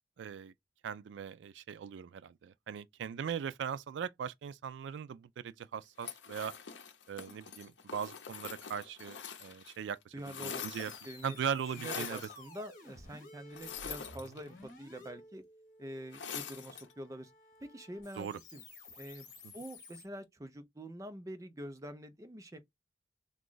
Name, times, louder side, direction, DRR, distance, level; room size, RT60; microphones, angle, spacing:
voice 1, 0.2-0.5 0.8-6.5 7.1-10.9 11.2-12.2 18.2-18.4, right 7 dB, 80° right, 0.3 m, -39 dB
sound 1, 6.0-9.8 10.0-11.2 11.7-12.4 13.5-14.7 16.1-16.9, left 7 dB, 85° left, 0.6 m, -44 dB
voice 2, 10.1-10.7 11.0-11.4 11.8-15.4 15.8-17.3 17.6-18.6 19.0-19.3 19.5-22.6, right 1 dB, 20° right, 0.5 m, -46 dB
sound 2, 10.6-20.1, left 2 dB, 50° left, 1.4 m, -54 dB
3.0 x 2.3 x 3.8 m
head